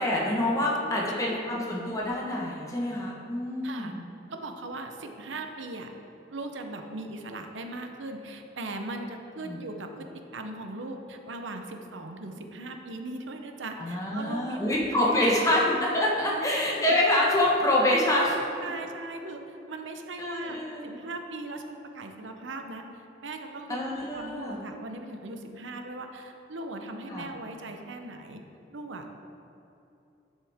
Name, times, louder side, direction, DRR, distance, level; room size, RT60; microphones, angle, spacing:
voice 1, 0.0-4.0 9.5-9.6 13.8-18.4 20.2-20.9 23.7-24.6 27.1-27.3, left 1 dB, 20° left, -4 dB, 1.4 m, -26 dB
voice 2, 0.8-1.7 3.6-3.9 4.3-5.9 6.3-14.6 14.9-15.1 15.5-15.6 16.3-17.0 18.6-23.8 24.1-28.4 28.7-29.2, right 2 dB, 85° right, 5 dB, 0.8 m, -39 dB
10.5 x 7.5 x 3.6 m, 2.8 s
head